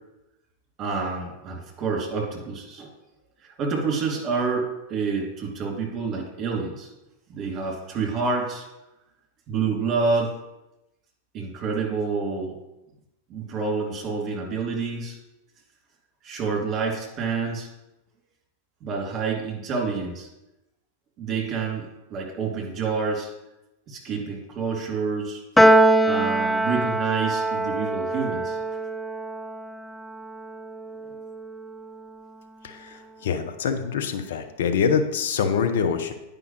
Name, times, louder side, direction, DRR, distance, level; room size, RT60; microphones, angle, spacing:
voice 1, 0.8-2.9 3.6-6.9 7.3-8.7 9.5-10.3 11.3-12.5 13.3-15.2 16.2-17.7 18.8-20.3 21.2-23.3 23.9-25.4 26.1-28.8, right 4 dB, 30° right, -1 dB, 2.4 m, -28 dB
Piano, 25.6-32.1, right 1 dB, 10° left, 0.3 m, -23 dB
voice 2, 32.6-36.1, left 6 dB, 60° left, 7 dB, 0.8 m, -25 dB
9.7 x 5.3 x 3.1 m, 0.95 s
figure-of-eight pair, 90°, 0 cm